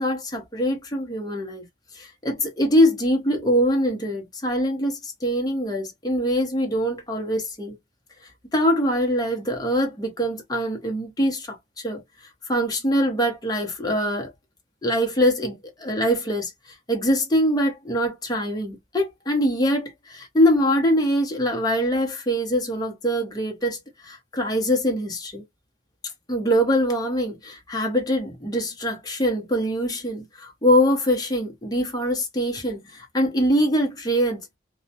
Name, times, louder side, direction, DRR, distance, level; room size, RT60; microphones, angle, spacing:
voice 1, 0.0-1.6 2.0-7.8 8.5-12.0 12.5-14.3 14.8-16.5 16.9-23.8 24.0-25.4 26.3-34.4, equal, 20° left, 0.7 m, -23 dB
2.2 x 2.1 x 2.6 m
head